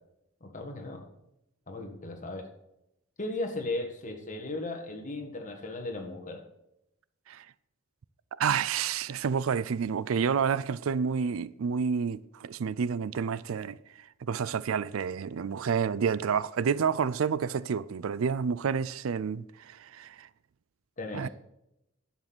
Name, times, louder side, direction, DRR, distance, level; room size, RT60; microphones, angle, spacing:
voice 1, 0.4-1.0 1.7-2.5 3.2-6.4 21.0-21.3, left 2 dB, 40° left, 1.8 m, -36 dB
voice 2, 8.4-13.8 14.2-20.3 21.1-21.3, right 6 dB, 80° right, 0.4 m, -29 dB
10.5 x 7.5 x 6.1 m
head